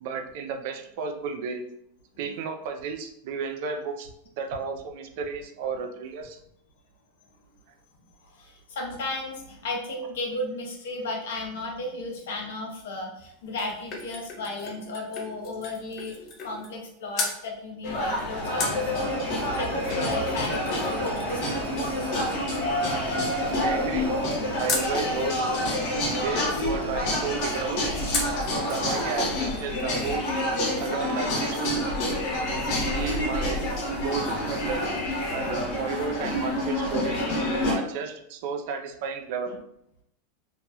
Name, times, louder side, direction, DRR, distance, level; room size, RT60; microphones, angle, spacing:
voice 1, 0.0-1.6 2.2-4.1 4.4-6.4 23.6-24.3 24.6-25.5 26.2-27.8 28.7-30.3 30.8-31.9 32.9-33.6 34.0-34.8 35.3-37.3 37.7-39.6, right 5 dB, 55° right, 6 dB, 0.4 m, -33 dB
voice 2, 8.2-16.2 16.4-22.0, left 2 dB, 90° left, 1 dB, 0.9 m, -35 dB
sound 1, 13.2-16.9 17.1-17.4 18.6-24.9 28.1-28.5 28.9-29.0 29.3-30.3 30.5-30.6, left 3 dB, 30° left, 0.6 m, -36 dB
sound 2, 17.8-37.7, left 1 dB, 55° left, 1.0 m, -28 dB
sound 3, 18.4-28.4, right 2 dB, 85° right, 0.9 m, -38 dB
2.9 x 2.9 x 2.3 m, 0.75 s
supercardioid pair, 160°, 0 cm